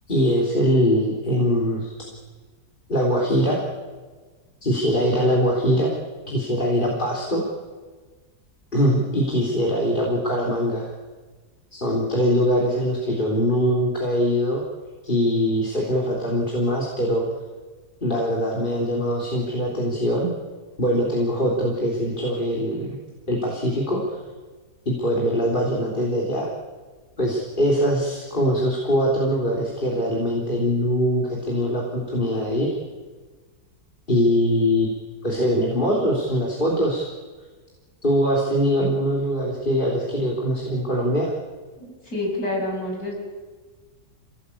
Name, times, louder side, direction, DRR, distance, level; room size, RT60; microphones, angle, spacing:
voice 1, 0.1-1.9 2.9-3.6 4.6-5.9 6.3-7.4 8.7-10.9 11.7-14.6 15.0-17.3 18.0-20.3 20.8-23.0 23.3-24.2 24.9-26.5 27.2-32.7 34.1-34.9 35.2-37.1 38.0-41.3, equal, 30° left, -3 dB, 3.7 m, -22 dB
voice 2, 41.8-43.1, left 1 dB, 65° left, -1 dB, 7.8 m, -28 dB
27.5 x 18.0 x 8.6 m, 1.4 s
omnidirectional pair, 1.7 m